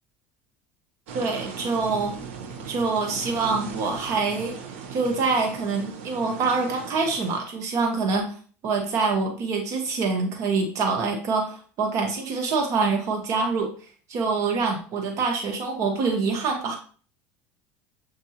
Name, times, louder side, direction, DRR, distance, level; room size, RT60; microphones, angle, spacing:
voice 1, 1.1-2.2 2.6-4.6 4.9-8.3 8.6-13.7 14.1-16.8, right 4 dB, 50° right, 2 dB, 1.0 m, -25 dB
sound 1, 1.1-7.4, right 6 dB, 85° right, 0.9 m, -38 dB
7.2 x 2.6 x 2.8 m, 0.42 s
supercardioid pair, 110°, 7 cm